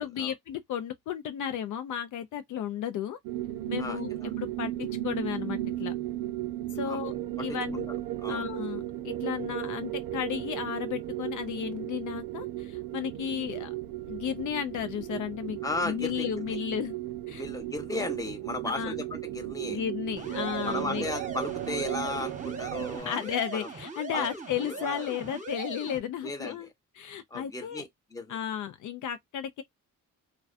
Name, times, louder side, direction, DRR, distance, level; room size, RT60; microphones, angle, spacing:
voice 1, 0.0-3.2 3.7-4.1 4.4-5.9 6.7-7.1 7.4-7.9 8.3-13.7 14.1-15.6 15.8-16.9 17.3-17.4 18.7-19.0 19.7-21.1 23.0-26.7 27.0-27.8 28.3-29.6, left 9 dB, 65° left, 0.5 m, -34 dB
sound 1, 3.2-23.0, right 14 dB, 80° right, 0.5 m, -35 dB
voice 2, 3.8-4.3 6.8-7.0 7.5-7.6 8.2-8.4 15.6-16.6 17.3-19.8 20.6-23.7 24.1-24.3 24.6-25.0 26.2-26.7 27.3-28.4, left 2 dB, 10° left, 0.9 m, -35 dB
sound 2, 20.2-26.0, right 4 dB, 20° right, 1.0 m, -40 dB
2.3 x 2.2 x 2.4 m
cardioid pair, 70°, 33 cm